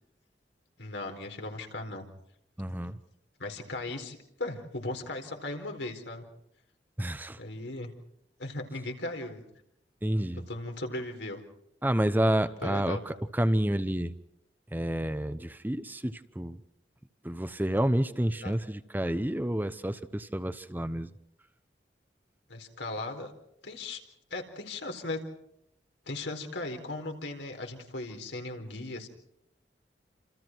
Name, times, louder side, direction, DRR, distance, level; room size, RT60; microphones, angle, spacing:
voice 1, 0.8-2.1 3.4-6.2 7.4-7.9 8.4-9.4 10.3-11.4 12.6-13.0 18.4-18.5 22.5-23.3 23.6-24.0 24.3-25.2 26.1-29.1, left 2 dB, 85° left, 4 dB, 4.3 m, -37 dB
voice 2, 2.6-3.0 7.0-7.4 10.0-10.4 11.8-14.1 14.7-16.6 17.2-21.1, right 1 dB, 10° right, 11 dB, 0.8 m, -29 dB
29.0 x 27.5 x 4.6 m, 0.76 s
head